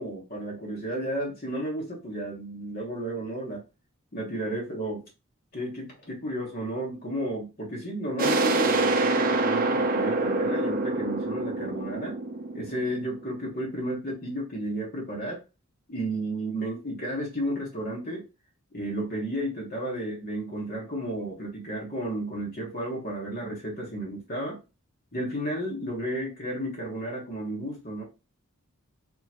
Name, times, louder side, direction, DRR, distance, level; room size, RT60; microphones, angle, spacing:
voice 1, 0.0-3.6 4.1-5.0 5.5-12.2 12.5-15.4 15.9-18.3 18.7-24.6 25.1-28.0, right 1 dB, 40° left, -2 dB, 1.4 m, -32 dB
sound 1, 8.2-13.7, right 2 dB, 40° right, 0.6 m, -26 dB
3.8 x 3.8 x 3.0 m, 0.28 s
head